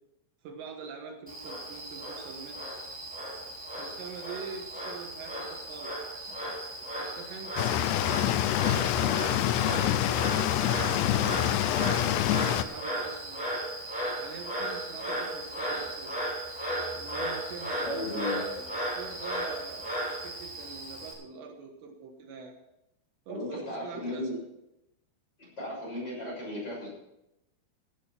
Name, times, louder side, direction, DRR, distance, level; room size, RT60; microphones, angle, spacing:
voice 1, 0.4-2.6 3.8-6.5 6.9-7.5 8.1-13.5 14.2-16.2 16.9-22.6 23.3-24.4, right 5 dB, 75° right, 3 dB, 3.4 m, -44 dB
Frog, 1.3-21.1, right 1 dB, ahead, 3.6 m, -36 dB
sound 1, 7.6-12.6, left 12 dB, 80° left, 2.6 m, -26 dB
voice 2, 17.8-18.4 23.3-24.3 25.6-26.9, left 1 dB, 25° left, -4 dB, 6.8 m, -35 dB
16.0 x 8.6 x 5.9 m, 0.87 s
omnidirectional pair, 5.2 m